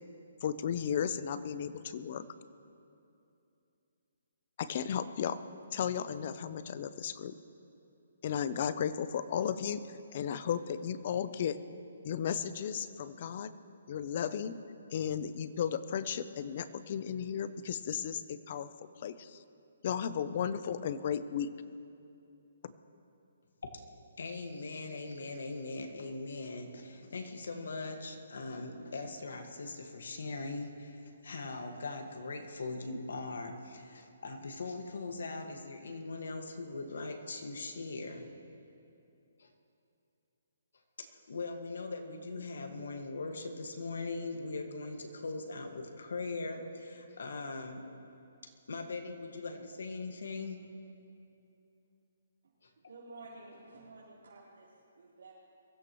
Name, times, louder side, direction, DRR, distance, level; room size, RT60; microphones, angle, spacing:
voice 1, 0.4-2.3 4.6-5.4 5.7-7.4 8.2-9.8 10.1-11.6 12.0-13.5 13.9-14.6 14.9-18.7 19.0-19.4 19.8-21.5 22.6-22.7, left 8 dB, 35° left, 13 dB, 0.5 m, -34 dB
voice 2, 24.2-38.3 39.4-39.5 41.0-47.9 48.7-50.6, left 3 dB, 70° left, 4 dB, 1.7 m, -40 dB
voice 3, 52.9-55.3, right 3 dB, 80° right, -9 dB, 3.9 m, -52 dB
23.0 x 15.0 x 3.1 m, 2.7 s
hypercardioid pair, 175°, 0 cm